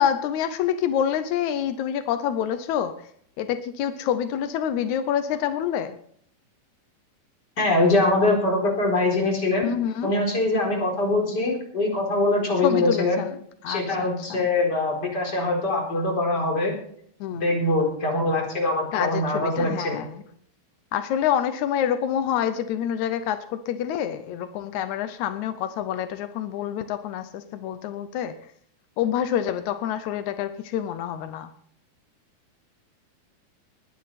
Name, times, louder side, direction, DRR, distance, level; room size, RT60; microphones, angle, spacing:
voice 1, 0.0-3.1 3.4-6.0 9.6-10.2 12.6-13.4 13.6-14.4 17.2-17.6 18.9-20.2 20.9-28.3 29.0-31.5, left 9 dB, 80° left, 10 dB, 1.6 m, -27 dB
voice 2, 7.6-9.7 10.0-13.2 13.7-16.7 17.3-20.0, left 2 dB, 25° left, 0 dB, 4.5 m, -23 dB
20.5 x 10.0 x 4.2 m, 0.63 s
omnidirectional pair, 4.3 m